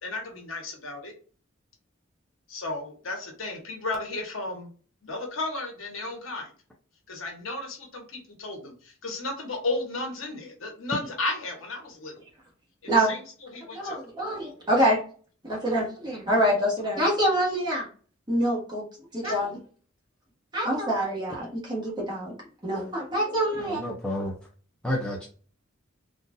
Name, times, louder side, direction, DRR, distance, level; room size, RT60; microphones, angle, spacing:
voice 1, 0.0-1.1 2.5-4.7 5.0-6.5 7.1-12.2 12.8-13.2 13.5-14.0 19.2-19.3 23.1-23.6, left 2 dB, 80° left, 1.2 m, -34 dB
voice 2, 13.7-15.0 15.4-17.9 18.3-18.9 19.1-19.6 20.5-22.3 22.6-23.8, right 1 dB, 20° right, 1.4 m, -25 dB
voice 3, 23.6-24.3 24.8-25.3, left 1 dB, 5° left, 0.6 m, -30 dB
3.8 x 2.5 x 2.6 m
head